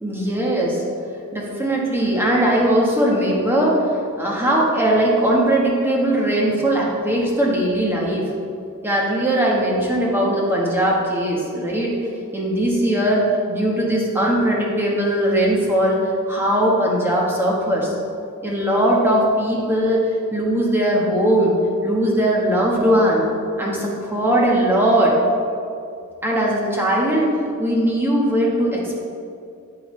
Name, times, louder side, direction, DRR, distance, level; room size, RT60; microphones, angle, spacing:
voice 1, 0.0-0.8 1.3-8.3 8.8-11.9 12.3-17.9 18.4-20.0 20.3-21.5 21.8-23.2 23.6-25.2 26.2-27.3 27.6-29.0, right 1 dB, 10° right, -3 dB, 1.3 m, -19 dB
8.9 x 8.1 x 3.2 m, 2.4 s
head